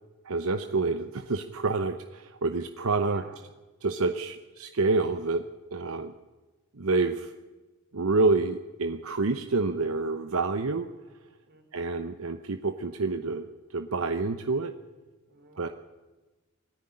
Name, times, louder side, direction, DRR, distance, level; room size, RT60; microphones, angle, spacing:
voice 1, 0.2-3.2 3.8-5.4 5.7-6.1 6.7-7.3 7.9-10.9 11.7-13.5 13.7-14.7 15.6-15.7, right 3 dB, 80° right, 7 dB, 0.9 m, -28 dB
voice 2, 2.9-3.4 11.5-12.0 15.3-15.7, right 2 dB, 50° right, 4 dB, 3.8 m, -50 dB
20.5 x 14.0 x 9.9 m, 1.2 s
head